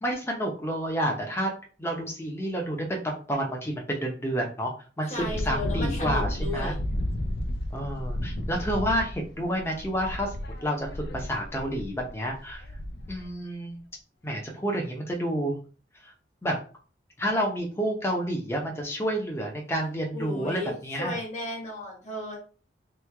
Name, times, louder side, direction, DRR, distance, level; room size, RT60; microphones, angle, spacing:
voice 1, 0.0-1.5 1.8-4.7 5.0-6.7 7.7-10.3 10.6-12.6 13.1-13.8 14.2-15.6 16.0-16.1 16.4-16.6 17.2-21.2, equal, 15° left, 0 dB, 0.7 m, -29 dB
Wind, 5.1-13.3, left 1 dB, 65° left, 0.5 m, -32 dB
voice 2, 5.1-6.7 20.1-22.4, left 1 dB, 40° left, -3 dB, 1.4 m, -34 dB
3.1 x 2.3 x 3.4 m, 0.38 s
head